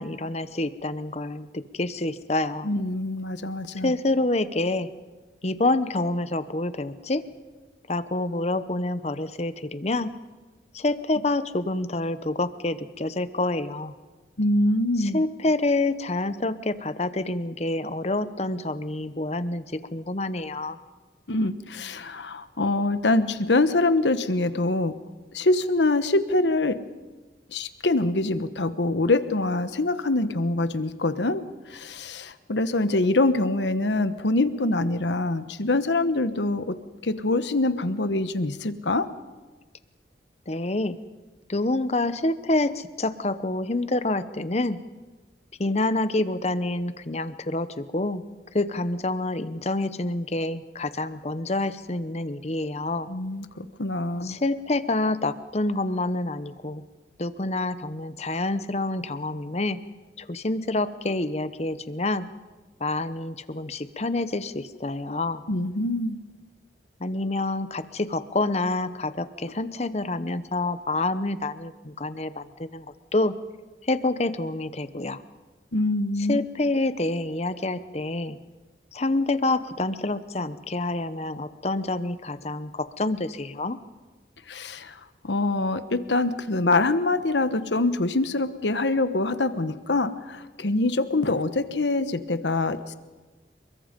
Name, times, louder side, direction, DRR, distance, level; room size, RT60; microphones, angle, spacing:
voice 1, 0.0-2.7 3.7-4.9 5.4-7.2 7.9-10.1 10.7-13.9 15.0-20.8 40.5-41.0 41.5-44.8 45.6-48.2 48.5-53.1 54.2-56.8 57.2-59.8 60.2-62.3 62.8-65.4 67.0-72.8 73.1-73.3 73.8-75.2 76.3-78.4 78.9-83.8, left 2 dB, 35° left, 13 dB, 0.9 m, -27 dB
voice 2, 2.6-3.9 14.4-15.2 21.3-24.9 25.3-26.8 27.5-36.8 37.0-39.1 53.1-54.4 65.5-66.2 75.7-76.4 84.5-92.9, left 2 dB, 85° left, 12 dB, 1.2 m, -24 dB
28.5 x 22.0 x 5.3 m, 1.3 s
head